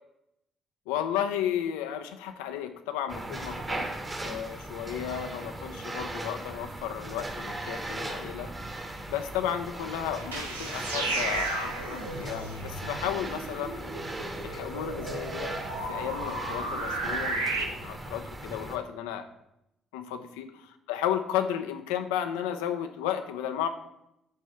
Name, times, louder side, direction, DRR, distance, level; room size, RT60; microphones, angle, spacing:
voice 1, 0.9-3.9 4.2-13.9 14.4-15.5 15.9-19.3 19.9-20.5 20.9-23.7, left 10 dB, 75° left, 8 dB, 0.5 m, -33 dB
sound 1, 3.1-18.8, right 2 dB, 30° right, 1.2 m, -38 dB
sound 2, 10.2-17.6, right 2 dB, 90° right, 0.7 m, -34 dB
8.2 x 3.1 x 5.6 m, 0.83 s
hypercardioid pair, 45°, 0 cm